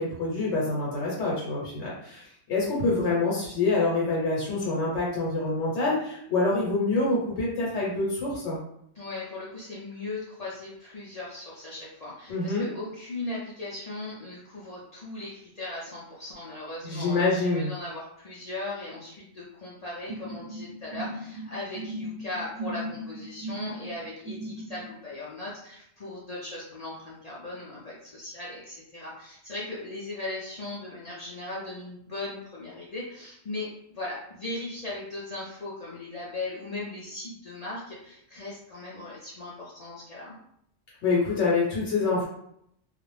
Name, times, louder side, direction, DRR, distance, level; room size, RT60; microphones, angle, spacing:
voice 1, 0.0-8.6 12.3-12.7 16.8-17.7 41.0-42.2, left 3 dB, 80° left, -5 dB, 1.0 m, -26 dB
voice 2, 9.0-40.4, left 2 dB, 50° left, -6 dB, 0.5 m, -38 dB
sound 1, 20.1-24.9, right 1 dB, 90° right, 1.0 m, -37 dB
2.4 x 2.0 x 3.1 m, 0.72 s
omnidirectional pair, 1.2 m